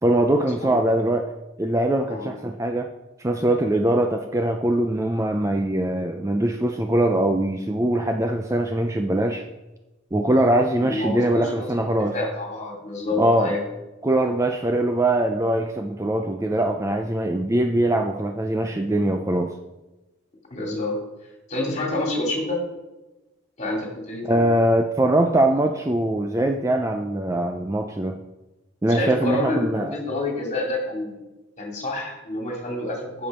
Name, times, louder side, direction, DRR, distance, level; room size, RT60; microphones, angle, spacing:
voice 1, 0.0-1.3 1.6-2.9 3.2-9.4 10.1-12.1 13.2-13.6 14.0-19.5 24.3-28.2 28.8-30.0, right 1 dB, 15° right, 5 dB, 0.4 m, -22 dB
voice 2, 10.8-11.8 12.1-13.6 20.5-21.0 21.5-22.6 23.6-24.4 28.9-31.2 31.6-33.3, left 2 dB, 35° left, -1 dB, 2.5 m, -28 dB
8.6 x 6.9 x 5.4 m, 1.1 s
head